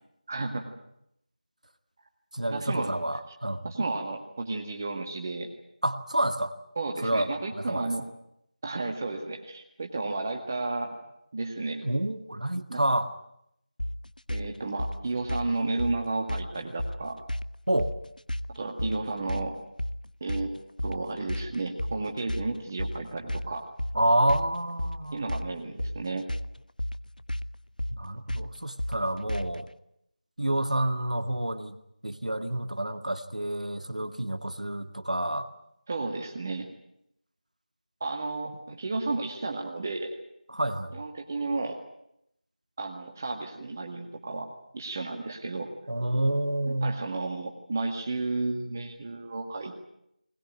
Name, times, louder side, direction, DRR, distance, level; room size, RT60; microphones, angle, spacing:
voice 1, 0.3-0.7 2.5-2.9 3.6-5.5 6.8-8.0 8.6-11.0 11.3-11.8 12.7-12.8 14.3-17.2 18.5-19.6 20.2-20.5 20.8-23.6 25.1-26.3 35.9-36.7 38.0-40.2 40.9-41.8 42.8-44.5 44.7-45.7 46.7-49.8, right 3 dB, 20° right, 2 dB, 1.8 m, -32 dB
voice 2, 2.3-3.8 5.8-6.5 7.0-7.3 7.6-7.9 11.8-13.1 17.7-17.9 23.9-25.2 28.0-29.7 30.4-31.8 32.0-35.5 40.5-40.9 45.9-47.0, right 1 dB, 60° right, 8 dB, 2.0 m, -28 dB
sound 1, 13.8-29.7, left 1 dB, 80° left, 0.9 m, -34 dB
21.0 x 20.5 x 9.2 m, 0.77 s
figure-of-eight pair, 170°, 4 cm